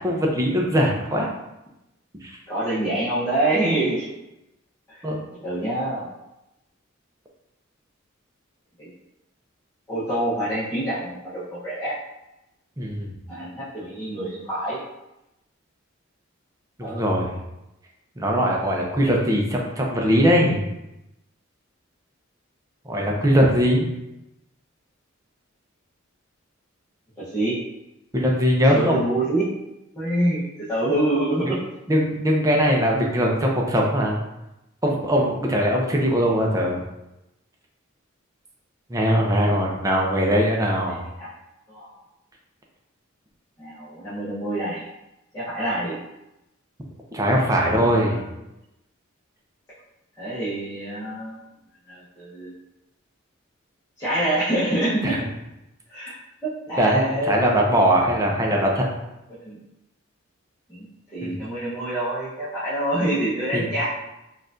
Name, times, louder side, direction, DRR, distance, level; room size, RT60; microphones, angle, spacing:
voice 1, 0.0-1.3 2.2-2.3 5.0-5.2 12.8-13.1 16.8-17.4 18.2-20.7 22.9-23.9 28.1-29.0 31.4-31.6 31.9-34.2 34.8-36.8 38.9-41.1 47.1-48.2 56.8-58.8 61.2-61.4 63.5-63.7, equal, 15° right, -1 dB, 0.6 m, -21 dB
voice 2, 2.5-4.1 4.9-5.0 5.4-6.1 8.8-8.9 9.9-12.0 13.3-14.8 16.8-17.0 27.2-27.6 28.7-29.4 29.9-31.6 41.2-41.3 41.7-41.9 43.6-44.9 45.3-46.0 47.6-48.3 50.2-51.4 51.9-52.5 54.0-55.2 55.9-56.1 56.4-57.4 59.4-59.6 60.7-60.8 61.1-63.8, right 1 dB, 15° left, -11 dB, 0.9 m, -26 dB
4.5 x 2.4 x 2.5 m, 0.91 s
head